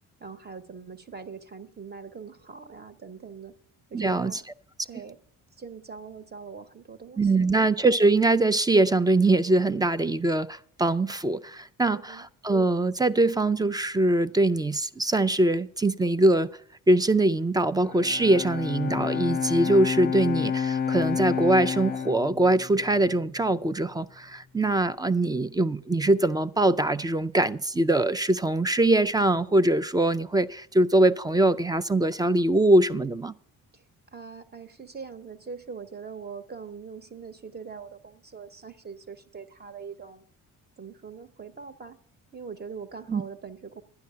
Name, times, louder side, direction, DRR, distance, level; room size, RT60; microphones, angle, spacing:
voice 1, 0.2-3.6 3.9-4.4 4.8-5.2 5.6-7.5 11.9-12.3 33.7-33.8 34.1-40.3 40.8-42.0 42.3-43.8, right 5 dB, 30° right, 1.0 m, -42 dB
voice 2, 3.9-4.4 7.2-16.5 16.9-33.3 43.1-43.2, right 2 dB, 10° right, 0.4 m, -23 dB
Bowed string instrument, 17.8-23.2, left 7 dB, 25° left, 0.7 m, -30 dB
11.5 x 9.7 x 5.6 m
cardioid pair, 90°, 34 cm